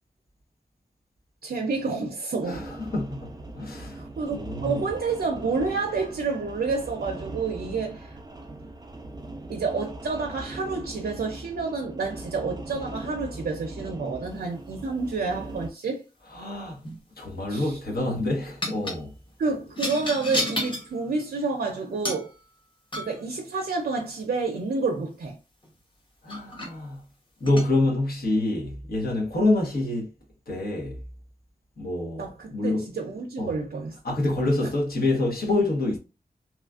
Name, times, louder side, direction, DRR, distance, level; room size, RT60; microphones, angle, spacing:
voice 1, 1.4-2.7 4.0-8.2 9.5-16.0 17.5-17.8 19.4-22.3 22.9-25.4 32.2-34.0, right 4 dB, 85° right, 0.5 m, -29 dB
voice 2, 2.4-4.0 4.3-4.9 16.3-16.8 17.2-19.1 26.2-27.0 27.4-30.1 30.5-31.0 31.8-32.8 33.4-33.6 34.0-36.0, left 2 dB, 75° left, 1.2 m, -27 dB
sound 1, 2.5-15.7, right 2 dB, 25° right, 0.5 m, -40 dB
sound 2, 16.7-17.0 18.6-19.0 19.7-20.9 22.0-22.3 22.9-23.2 25.6-25.7 26.3-26.7 27.4-27.7, left 1 dB, 30° left, 0.8 m, -31 dB
3.0 x 2.4 x 2.3 m
wide cardioid pair, 95°, 16 cm